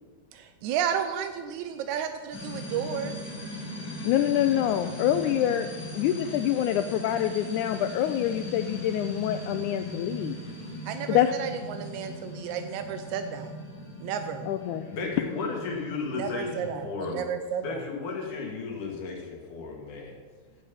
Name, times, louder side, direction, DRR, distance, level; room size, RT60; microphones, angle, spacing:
voice 1, 0.3-3.1 10.9-13.5 14.0-14.5 16.2-17.8, right 8 dB, 80° right, 7 dB, 1.7 m, -32 dB
sound 1, 2.3-16.8, equal, 40° left, 2.5 m, -39 dB
voice 2, 4.0-5.7 5.9-10.4 11.1-11.3 14.5-14.9, left 11 dB, 85° left, 9 dB, 1.7 m, -26 dB
voice 3, 14.9-17.2 17.6-20.2, left 4 dB, 65° left, -1 dB, 3.5 m, -34 dB
16.0 x 5.5 x 7.0 m, 1.5 s
omnidirectional pair, 4.0 m